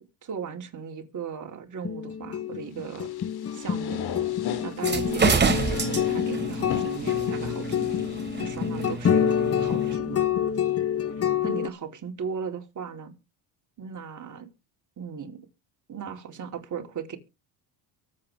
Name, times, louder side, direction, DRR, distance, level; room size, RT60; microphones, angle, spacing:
voice 1, 0.2-3.1 3.5-4.1 4.6-7.9 8.4-10.2 11.2-13.1 13.8-14.5 15.0-15.4 15.9-17.2, right 6 dB, 35° right, 4.3 m, -37 dB
sound 1, 1.8-11.7, left 9 dB, 30° left, 1.2 m, -27 dB
sound 2, 2.8-8.9, left 8 dB, 50° left, 2.8 m, -39 dB
sound 3, 4.7-10.0, right 4 dB, 20° right, 3.3 m, -29 dB
23.5 x 8.6 x 3.7 m
cardioid pair, 120°, 50 cm